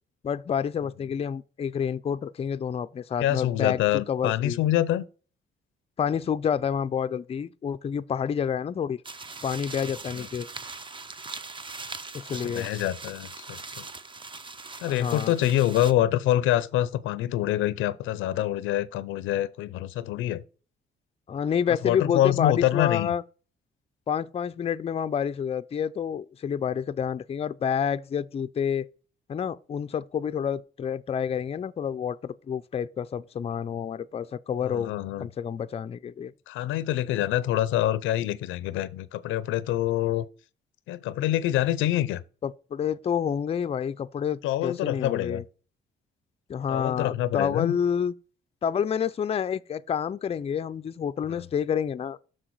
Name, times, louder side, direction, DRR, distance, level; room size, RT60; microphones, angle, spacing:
voice 1, 0.2-3.8 4.1-4.6 6.0-9.0 9.4-10.5 12.1-12.7 14.9-15.3 21.3-23.2 24.1-28.9 29.3-34.9 35.2-36.3 42.4-45.4 46.5-48.1 48.6-52.2, left 8 dB, 30° left, 0.4 m, -28 dB
voice 2, 3.2-5.0 10.1-10.3 12.3-13.9 14.8-20.4 21.7-23.1 34.6-35.3 36.5-40.3 40.9-42.2 44.4-45.4 46.7-47.7 51.3-51.4, left 13 dB, 90° left, 0.5 m, -26 dB
sound 1, 9.0-15.9, right 3 dB, 25° right, 0.6 m, -41 dB
6.3 x 6.2 x 4.6 m
cardioid pair, 90°, 20 cm